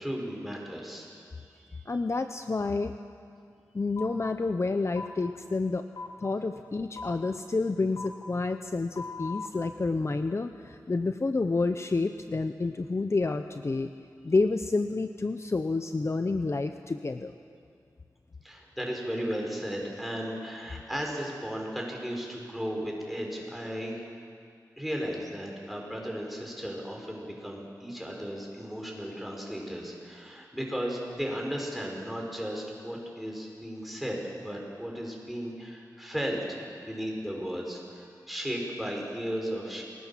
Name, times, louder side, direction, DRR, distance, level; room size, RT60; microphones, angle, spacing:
voice 1, 0.0-1.8 18.4-24.0 24.8-39.8, equal, ahead, -1 dB, 6.1 m, -35 dB
voice 2, 1.9-2.9 3.7-5.9 6.2-13.9 14.2-17.3, left 3 dB, 40° left, 8 dB, 0.8 m, -29 dB
sound 1, 4.0-4.1 4.9-5.1 5.9-6.1 6.9-7.1 7.9-8.1 8.9-9.5, left 4 dB, 80° left, 2.7 m, -38 dB
28.0 x 20.0 x 7.5 m, 2.3 s
wide cardioid pair, 75°, 7 cm